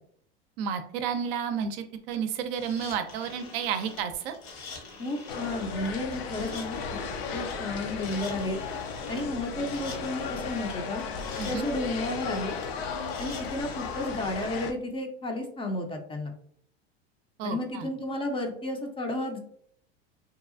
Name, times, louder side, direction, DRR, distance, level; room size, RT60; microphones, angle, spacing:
voice 1, 0.6-4.3 11.4-11.7 17.4-17.9, right 7 dB, 65° right, 8 dB, 0.5 m, -31 dB
sound 1, 2.5-14.4, left 4 dB, 55° left, 1.0 m, -45 dB
voice 2, 5.0-6.8 7.3-8.6 9.1-11.0 11.5-12.6 13.2-16.3 17.4-19.4, left 2 dB, 15° left, 3 dB, 0.4 m, -32 dB
sound 2, 5.3-14.7, left 5 dB, 75° left, 0.6 m, -35 dB
2.7 x 2.3 x 2.4 m, 0.63 s
hypercardioid pair, 95°, 32 cm